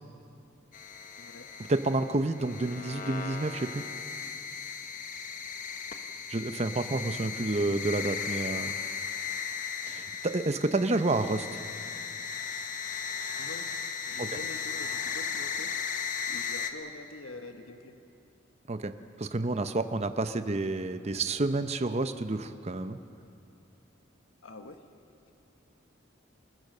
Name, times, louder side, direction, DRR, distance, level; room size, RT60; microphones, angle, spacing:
sound 1, 0.7-16.7, left 6 dB, 40° left, 1.1 m, -36 dB
voice 1, 1.2-1.5 13.4-13.7 14.1-15.7 16.3-18.0 24.4-24.8, left 2 dB, 90° left, 6 dB, 1.2 m, -45 dB
voice 2, 1.7-3.8 6.3-8.7 9.9-11.5 14.2-14.3 18.7-18.9 19.2-23.0, right 2 dB, 35° right, 10 dB, 0.7 m, -29 dB
28.0 x 15.5 x 6.7 m, 2.7 s
head